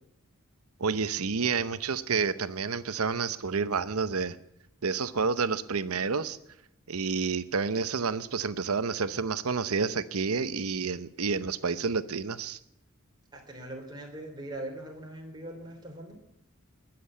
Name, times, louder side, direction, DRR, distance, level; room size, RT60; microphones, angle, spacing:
voice 1, 0.8-4.4 4.8-6.4 6.9-12.6, right 5 dB, 80° right, 14 dB, 0.8 m, -29 dB
voice 2, 13.3-16.2, right 1 dB, 20° right, 1 dB, 3.2 m, -41 dB
20.5 x 7.8 x 8.8 m, 0.83 s
head